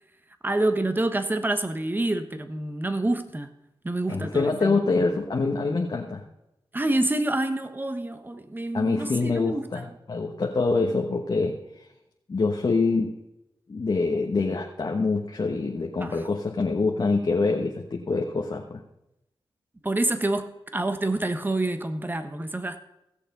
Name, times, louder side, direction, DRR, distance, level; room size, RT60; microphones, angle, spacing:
voice 1, 0.4-3.5 3.8-4.8 6.7-9.8 16.0-16.2 19.8-22.8, right 2 dB, 20° right, 1.2 m, -27 dB
voice 2, 4.1-6.2 8.7-11.6 12.3-13.1 13.7-18.8, left 3 dB, 50° left, 1.2 m, -25 dB
16.0 x 6.8 x 5.3 m
cardioid pair, 70°, 9 cm